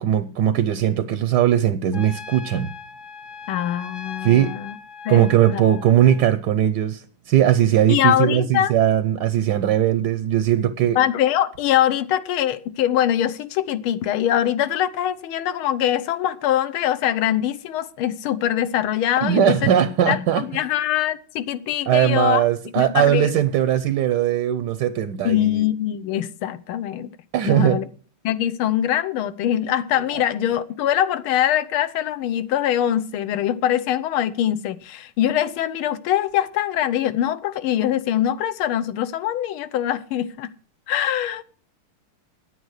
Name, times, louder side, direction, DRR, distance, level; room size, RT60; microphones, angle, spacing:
voice 1, 0.0-2.7 4.2-4.5 5.1-7.0 7.3-11.0 19.2-20.4 21.9-25.6 27.3-27.8 30.1-30.2, right 11 dB, 70° right, 1.1 m, -19 dB
Trumpet, 1.9-6.3, left 6 dB, 35° left, 0.9 m, -39 dB
voice 2, 3.5-4.8 5.0-5.6 7.9-8.7 11.0-19.7 20.1-22.4 22.8-23.3 25.2-27.1 27.5-27.9 28.2-40.5 40.9-41.4, left 11 dB, 80° left, 1.6 m, -23 dB
9.7 x 9.3 x 6.4 m
omnidirectional pair, 2.3 m